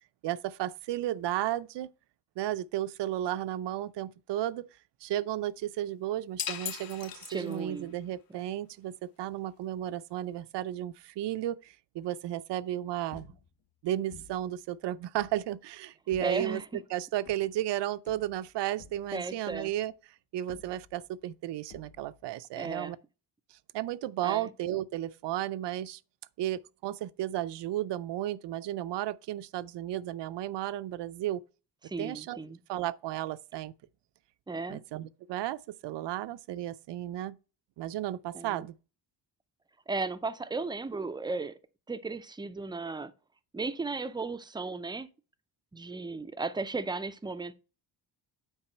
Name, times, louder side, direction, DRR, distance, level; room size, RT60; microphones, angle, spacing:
voice 1, 0.2-1.9 2.4-4.7 5.0-13.3 13.8-16.6 16.9-19.9 20.3-23.0 23.5-26.0 26.4-31.4 32.0-32.4 32.7-33.7 34.7-37.4 37.8-38.7, right 13 dB, 70° right, 0.6 m, -34 dB
sound 1, 6.4-7.9, left 9 dB, 55° left, 1.0 m, -38 dB
voice 2, 7.3-8.0 16.2-16.8 19.1-19.7 22.6-23.0 24.2-24.5 31.8-32.6 34.5-34.8 38.3-38.7 39.9-41.6 41.9-43.1 43.5-45.1 45.7-47.5, right 3 dB, 10° right, 0.4 m, -35 dB
sound 2, 13.1-13.7 14.1-14.6 15.2-15.5 16.1-16.6 17.2-17.7 18.1-20.0 20.5-21.2 21.7-22.3, left 6 dB, 75° left, 1.6 m, -54 dB
9.0 x 4.7 x 4.4 m
cardioid pair, 150°, 43 cm